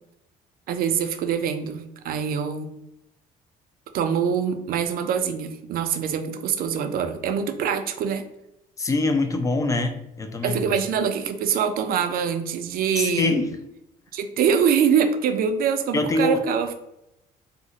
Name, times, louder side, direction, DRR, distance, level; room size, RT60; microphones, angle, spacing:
voice 1, 0.7-2.7 3.9-8.2 10.4-13.3 14.1-16.7, right 7 dB, 60° right, 7 dB, 0.4 m, -24 dB
voice 2, 8.8-10.7 13.0-13.6 15.9-16.4, left 2 dB, 20° left, 6 dB, 0.4 m, -24 dB
2.4 x 2.0 x 3.9 m, 0.86 s
cardioid pair, 110°, 17 cm